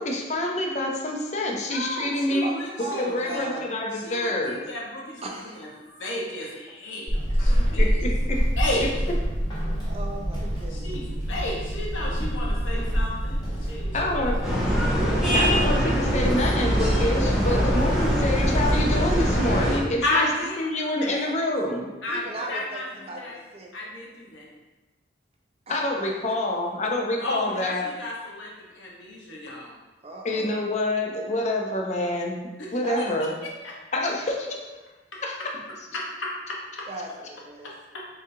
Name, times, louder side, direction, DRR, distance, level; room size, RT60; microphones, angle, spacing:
voice 1, 0.0-2.5 2.8-4.6 7.8-8.4 13.9-14.4 15.3-20.3 20.6-21.9 25.7-27.9 30.2-32.4 32.7-33.3 33.9-34.6 35.2-35.4, left 1 dB, 35° left, 0 dB, 0.5 m, -27 dB
voice 2, 1.6-3.4 3.9-5.7 6.0-7.9 8.6-8.9 10.7-14.2 14.5-15.4 20.0-21.3 22.0-23.4 23.7-24.5 27.2-29.8 32.6-32.7 33.0-33.7 35.1-35.2 35.9-36.9 37.6-38.1, left 1 dB, 90° left, -3 dB, 0.9 m, -33 dB
voice 3, 2.4-3.6 5.2-6.1 7.3-7.4 9.9-11.0 17.5-18.1 22.1-23.7 25.7-26.3 30.0-30.5 32.8-33.1 36.9-37.7, right 2 dB, 30° right, 1 dB, 0.5 m, -37 dB
Walk footsteps / Squeak, 7.1-19.7, equal, 20° left, 1.2 m, -27 dB
sound 1, 14.4-19.8, equal, 5° right, 0.8 m, -23 dB
4.0 x 3.6 x 2.7 m, 1.2 s
head